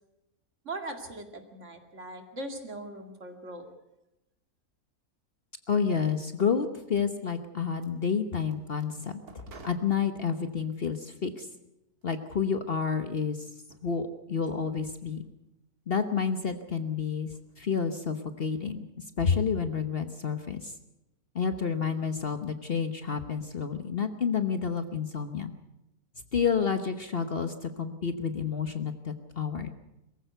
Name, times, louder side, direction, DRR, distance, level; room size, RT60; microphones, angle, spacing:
voice 1, 0.6-3.7, right 2 dB, 50° right, 5 dB, 2.6 m, -40 dB
voice 2, 5.7-9.2 9.6-11.5 12.0-13.5 13.8-15.2 15.9-18.9 19.2-20.7 21.3-25.5 26.3-29.7, left 6 dB, 45° left, 9 dB, 1.2 m, -29 dB
sound 1, 7.7-10.7 11.4-12.2 12.6-13.3 13.6-13.9 14.4-14.6 15.2-15.3 16.2-16.6 16.9-17.6, right 3 dB, 75° right, 2.7 m, -53 dB
22.5 x 15.0 x 8.1 m, 0.92 s
omnidirectional pair, 1.6 m